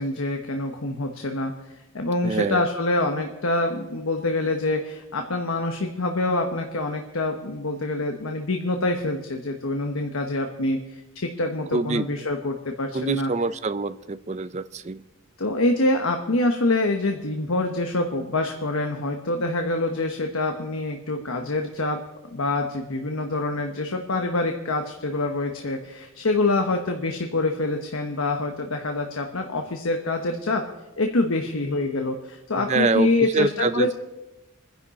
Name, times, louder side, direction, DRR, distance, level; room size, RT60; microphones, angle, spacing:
voice 1, 0.0-13.3 15.4-22.0 22.3-30.6 31.0-33.9, left 2 dB, 80° left, 4 dB, 1.1 m, -26 dB
voice 2, 2.2-2.7 11.7-12.1 12.9-15.0 32.6-33.9, right 3 dB, 30° right, 13 dB, 0.5 m, -25 dB
26.5 x 10.5 x 4.2 m, 1.1 s
head